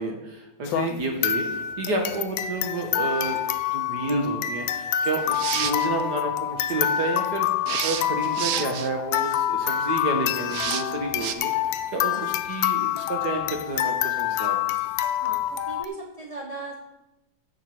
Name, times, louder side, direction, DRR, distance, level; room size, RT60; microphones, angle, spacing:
voice 1, 0.0-3.4 3.7-11.5 11.9-14.6, right 2 dB, 55° right, 2 dB, 1.6 m, -30 dB
sound 1, 0.7-15.9, left 10 dB, 75° left, 1.3 m, -27 dB
sound 2, 5.2-5.9 7.7-8.9 10.5-10.8 11.2-11.3, right 10 dB, 75° right, 0.8 m, -29 dB
voice 2, 12.1-12.4 15.2-16.8, right 3 dB, 30° right, -1 dB, 0.6 m, -38 dB
15.5 x 6.1 x 4.5 m, 0.97 s
omnidirectional pair, 2.2 m